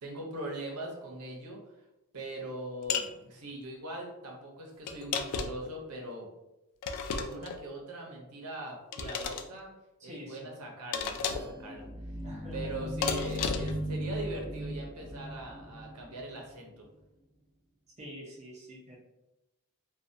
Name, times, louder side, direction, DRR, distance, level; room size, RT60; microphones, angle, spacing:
voice 1, 0.0-1.6 2.1-6.3 7.1-9.7 10.0-11.9 12.2-16.9, right 1 dB, 80° right, 0 dB, 0.7 m, -41 dB
sound 1, 2.9-3.1 4.9-5.7 6.8-7.6 8.9-9.5 10.9-11.6 13.0-13.8, left 6 dB, 90° left, 0.3 m, -33 dB
voice 2, 10.1-10.5 12.2-12.9 18.0-19.0, equal, 30° right, -4 dB, 0.6 m, -46 dB
sound 2, 11.1-16.6, equal, 30° left, 0.7 m, -38 dB
2.6 x 2.2 x 2.5 m, 0.97 s
head